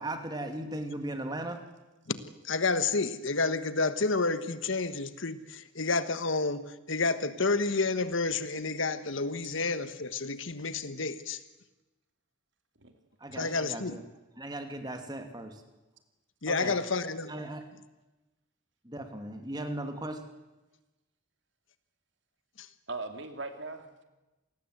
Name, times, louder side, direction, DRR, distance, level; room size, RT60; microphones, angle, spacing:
voice 1, 0.0-1.6 13.2-14.0 14.4-15.6 16.5-16.8 17.3-17.7 18.8-20.2, right 1 dB, 20° right, 6 dB, 2.6 m, -37 dB
voice 2, 2.4-11.4 13.4-14.0 16.4-17.3 22.6-22.7, left 3 dB, 65° left, 12 dB, 1.4 m, -30 dB
voice 3, 22.9-24.0, right 3 dB, 55° right, 7 dB, 2.7 m, -40 dB
27.5 x 19.5 x 8.1 m, 1.1 s
head